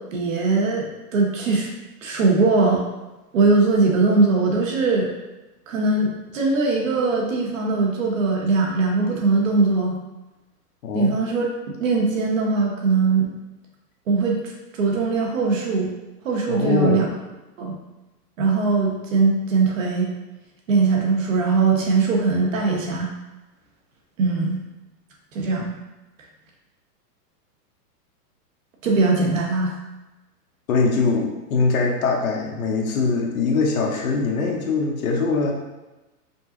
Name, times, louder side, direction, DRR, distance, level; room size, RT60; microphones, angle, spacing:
voice 1, 0.1-1.7 2.0-2.8 3.3-5.1 5.7-10.0 10.9-13.3 14.1-15.9 16.2-17.1 17.6-17.8 18.4-20.1 20.7-23.1 24.2-24.6 25.3-25.7 28.8-29.8, right 3 dB, 50° right, -1 dB, 0.9 m, -21 dB
voice 2, 10.8-11.2 16.5-17.0 30.7-35.5, left 4 dB, 60° left, 0 dB, 0.9 m, -22 dB
5.3 x 2.0 x 3.7 m, 1.1 s
supercardioid pair, 175°, 48 cm